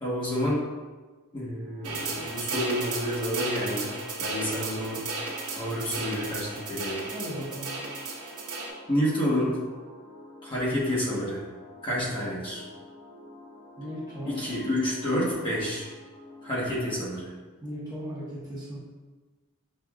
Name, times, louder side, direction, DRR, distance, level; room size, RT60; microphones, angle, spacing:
voice 1, 0.0-0.6 1.3-5.0 5.6-7.0 8.9-9.6 10.4-11.4 11.8-12.6 14.2-15.9 16.4-17.3, equal, 25° left, -8 dB, 1.1 m, -29 dB
sound 1, 1.6-17.0, left 2 dB, 60° left, 1.5 m, -48 dB
sound 2, 1.8-8.7, right 3 dB, 75° right, 0.9 m, -34 dB
voice 2, 7.1-7.8 13.8-14.4 17.6-18.8, equal, 15° right, -8 dB, 0.9 m, -37 dB
6.3 x 2.5 x 2.3 m, 1.3 s
head